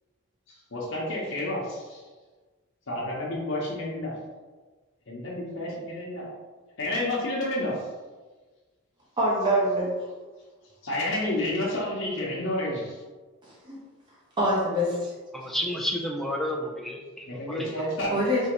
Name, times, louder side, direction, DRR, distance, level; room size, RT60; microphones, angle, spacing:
voice 1, 0.7-2.0 2.9-4.1 5.1-6.3 6.8-7.9 10.8-13.0 17.3-18.2, left 1 dB, 60° left, -5 dB, 0.9 m, -30 dB
voice 2, 9.2-9.9 13.7-13.8 14.4-15.1 18.1-18.5, equal, 20° right, -6 dB, 0.9 m, -24 dB
voice 3, 15.3-17.7, equal, ahead, 0 dB, 0.3 m, -31 dB
3.8 x 2.7 x 3.0 m, 1.3 s
head